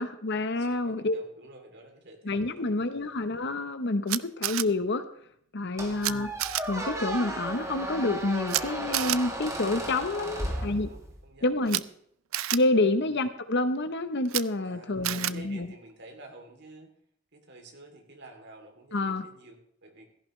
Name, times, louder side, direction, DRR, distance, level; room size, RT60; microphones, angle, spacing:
voice 1, 0.0-1.1 2.3-5.0 5.5-6.3 6.6-10.9 11.4-11.8 12.5-15.7 18.9-19.2, left 2 dB, 60° left, 10 dB, 1.0 m, -28 dB
voice 2, 0.6-3.2 5.8-6.2 10.1-11.8 12.9-13.1 14.6-16.9 17.3-20.1, right 2 dB, 60° right, 3 dB, 3.1 m, -50 dB
Camera, 4.1-4.6 6.0-6.1 6.4-6.6 8.5-8.6 8.9-9.2 11.7-11.8 12.3-12.6 14.3-14.4 15.0-15.3, right 14 dB, 90° right, 0.5 m, -28 dB
Squeak, 5.8-11.3, right 1 dB, 15° right, 2.3 m, -35 dB
16.0 x 14.0 x 3.3 m, 0.68 s
head